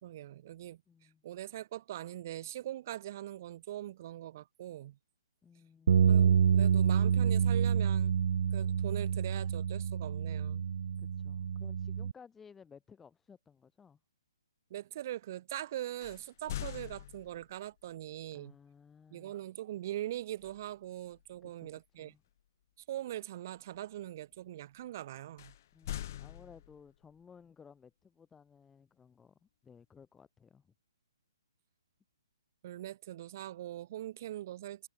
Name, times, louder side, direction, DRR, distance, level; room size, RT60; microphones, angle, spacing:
voice 1, 0.0-0.8 1.2-5.0 6.1-8.2 8.5-10.6 14.7-18.6 19.1-22.1 22.9-25.5 32.6-34.9, right 13 dB, 35° right, 5.1 m, -42 dB
voice 2, 0.9-1.2 5.4-6.2 11.0-14.0 18.3-19.4 21.4-21.7 22.0-22.2 25.7-30.7, left 6 dB, 5° left, 7.1 m, -58 dB
sound 1, 5.9-12.1, right 8 dB, 60° right, 0.5 m, -28 dB
sound 2, 16.0-17.6 20.4-20.7 21.1-21.4 25.4-27.0, left 12 dB, 35° left, 2.8 m, -43 dB
hypercardioid pair, 165°, 3 cm